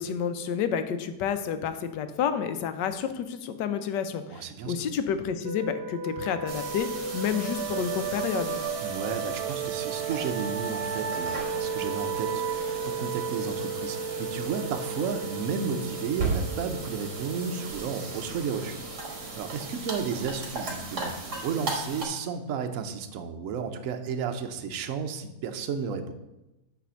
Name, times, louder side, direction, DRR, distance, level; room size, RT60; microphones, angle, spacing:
voice 1, 0.0-8.6, left 7 dB, 85° left, 9 dB, 1.3 m, -30 dB
voice 2, 4.3-4.7 8.8-18.8 19.1-26.1, right 6 dB, 60° right, 6 dB, 0.9 m, -33 dB
sound 1, 5.4-20.8, right 6 dB, 85° right, 0.5 m, -34 dB
sound 2, 6.5-22.1, right 3 dB, 45° right, 1.7 m, -37 dB
8.3 x 3.4 x 6.3 m, 0.98 s
omnidirectional pair, 1.8 m